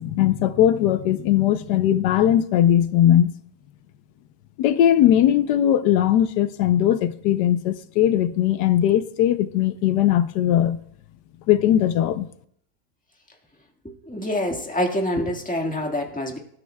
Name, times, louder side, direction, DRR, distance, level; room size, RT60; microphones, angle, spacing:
voice 1, 0.0-3.3 4.6-10.8 11.5-12.3, left 11 dB, 85° left, 1.3 m, -19 dB
voice 2, 13.8-16.4, left 1 dB, 5° left, 1.5 m, -26 dB
19.5 x 13.0 x 2.2 m
omnidirectional pair, 1.8 m